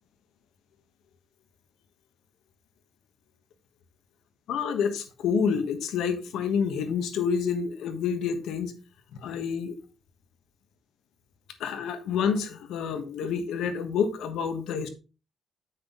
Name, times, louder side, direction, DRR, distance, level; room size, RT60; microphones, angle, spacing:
voice 1, 4.5-8.7 9.2-9.7 11.6-14.9, left 6 dB, 80° left, 1.3 m, -28 dB
7.9 x 6.0 x 3.9 m
cardioid pair, 90°, 0 cm